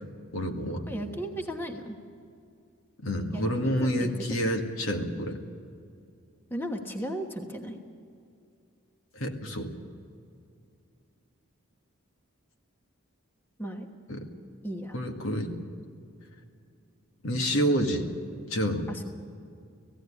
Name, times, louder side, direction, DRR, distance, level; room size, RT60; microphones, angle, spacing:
voice 1, 0.3-0.9 3.0-5.4 9.1-9.7 14.1-14.3 14.9-15.5 17.2-18.1 18.5-18.9, equal, 75° left, 3 dB, 2.0 m, -28 dB
voice 2, 0.9-2.0 3.3-4.1 4.4-4.6 6.5-7.8 13.6-13.9 14.6-15.0 18.9-19.0, equal, 10° left, 3 dB, 1.2 m, -35 dB
17.0 x 16.0 x 10.0 m, 2.4 s
head